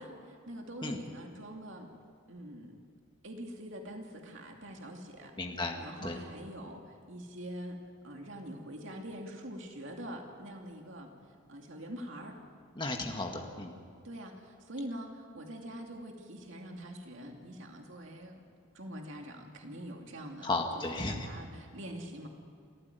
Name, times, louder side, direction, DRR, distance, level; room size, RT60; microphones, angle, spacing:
voice 1, 0.0-1.9 2.3-2.8 3.2-5.3 5.8-7.8 8.0-11.1 11.5-12.4 14.0-18.4 18.7-22.3, equal, 60° right, 2 dB, 2.6 m, -44 dB
voice 2, 5.4-6.2 12.8-13.8 20.4-21.3, left 2 dB, 20° left, 2 dB, 1.9 m, -35 dB
27.5 x 14.5 x 9.4 m, 2.3 s
head